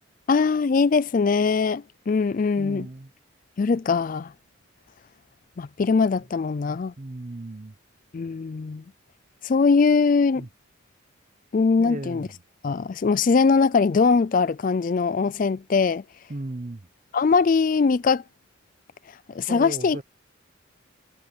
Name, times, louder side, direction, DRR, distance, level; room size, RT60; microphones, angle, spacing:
voice 1, 0.3-2.9 3.6-4.3 5.6-6.9 8.1-8.8 9.4-10.4 11.5-12.3 12.6-16.0 17.1-18.2 19.3-20.0, left 4 dB, 40° left, 0.3 m, -21 dB
voice 2, 2.6-3.1 7.0-7.7 10.4-10.5 11.8-12.4 16.3-16.9 19.5-20.0, right 2 dB, 35° right, 0.7 m, -36 dB
head